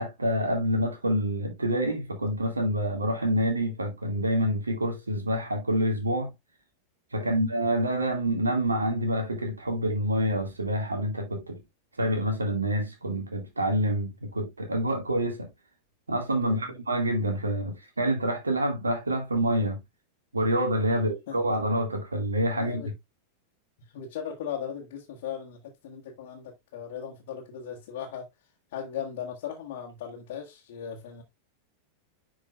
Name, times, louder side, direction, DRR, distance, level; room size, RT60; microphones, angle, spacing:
voice 1, 0.0-6.3 7.1-11.6 12.0-15.5 16.1-19.8 20.3-22.9, equal, 80° right, 1.9 m, -27 dB
voice 2, 16.5-16.8 20.9-21.6 22.5-22.9 23.8-28.3 28.7-31.2, left 8 dB, 55° left, 1.6 m, -38 dB
10.5 x 4.9 x 2.3 m
figure-of-eight pair, 90°, 0 cm